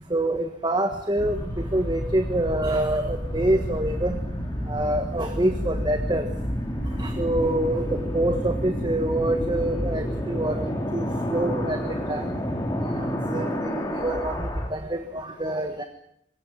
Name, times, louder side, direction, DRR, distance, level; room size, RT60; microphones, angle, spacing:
voice 1, 0.1-4.2 4.7-6.2 7.0-10.6 10.9-11.8 12.1-12.2 13.3-15.8, right 1 dB, 25° right, 6 dB, 1.4 m, -26 dB
sound 1, 1.2-14.7, equal, 20° left, 3.3 m, -29 dB
21.5 x 18.5 x 9.0 m, 0.76 s
head